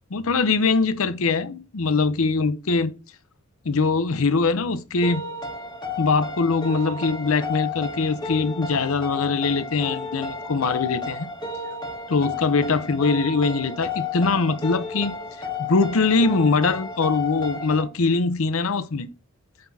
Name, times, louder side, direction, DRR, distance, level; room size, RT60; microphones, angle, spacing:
voice 1, 0.1-2.9 3.6-5.2 6.0-11.3 12.1-15.1 15.6-19.1, left 4 dB, 75° left, 0.7 m, -22 dB
sound 1, 5.0-17.8, left 4 dB, 20° left, 1.6 m, -32 dB
8.9 x 5.8 x 2.8 m
head